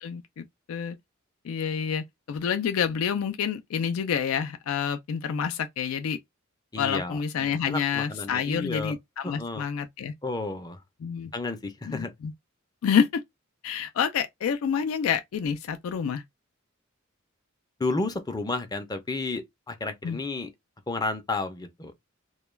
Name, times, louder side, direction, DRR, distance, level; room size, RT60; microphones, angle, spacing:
voice 1, 0.0-1.0 1.4-6.2 6.8-10.1 11.0-11.3 11.8-12.3 12.8-13.2 13.6-16.2 20.0-20.2, left 7 dB, 75° left, 0.3 m, -28 dB
voice 2, 6.7-7.2 7.7-8.9 9.2-9.6 10.2-10.8 11.3-12.1 17.8-20.5 20.9-21.9, left 3 dB, 20° left, 0.5 m, -31 dB
2.3 x 2.2 x 3.1 m
head